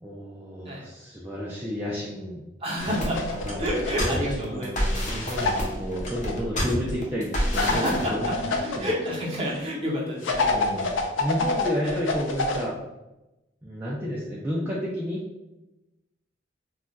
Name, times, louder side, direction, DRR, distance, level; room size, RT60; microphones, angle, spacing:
voice 1, 0.0-2.4 3.3-8.2 8.4-8.9 10.5-10.9 11.2-12.8 13.6-15.2, equal, 10° right, -7 dB, 0.4 m, -31 dB
voice 2, 2.6-4.8 7.6-8.3 8.6-10.9 11.1-11.3 11.8-12.0, equal, 30° right, -4 dB, 0.7 m, -30 dB
sound 1, 2.8-8.1, equal, 40° left, 0.6 m, -29 dB
sound 2, 2.9-4.3 5.4-6.3 7.5-8.8 10.2-12.6, left 3 dB, 90° left, 0.4 m, -27 dB
sound 3, 7.1-10.0, left 1 dB, 80° right, 0.7 m, -41 dB
2.3 x 2.1 x 3.8 m, 0.97 s
head